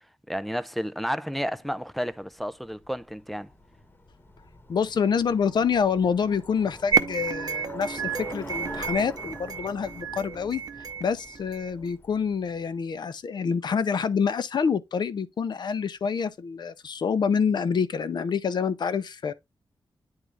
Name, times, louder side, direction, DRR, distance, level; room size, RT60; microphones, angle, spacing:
voice 1, 0.3-3.5, equal, ahead, 0.3 m, -31 dB
Bicycle, 1.9-12.8, left 2 dB, 25° left, 1.1 m, -46 dB
voice 2, 4.7-10.6 11.0-19.3, left 6 dB, 60° left, 0.7 m, -27 dB
sound 1, 6.9-11.9, right 6 dB, 50° right, 0.6 m, -30 dB
9.6 x 3.7 x 3.2 m
wide cardioid pair, 155°, 8 cm